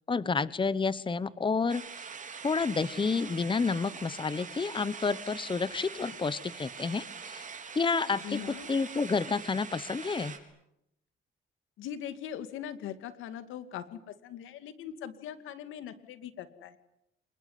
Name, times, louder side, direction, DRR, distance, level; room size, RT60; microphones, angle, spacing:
voice 1, 0.1-1.8 2.4-7.4 7.7-8.4 8.7-10.3, left 4 dB, 25° left, 17 dB, 1.1 m, -30 dB
sound 1, 1.7-10.4, right 5 dB, 40° right, 4.6 m, -43 dB
voice 2, 8.2-8.7 11.8-16.8, left 9 dB, 90° left, 11 dB, 2.4 m, -41 dB
27.0 x 21.5 x 9.6 m, 0.82 s
cardioid pair, 90°, 20 cm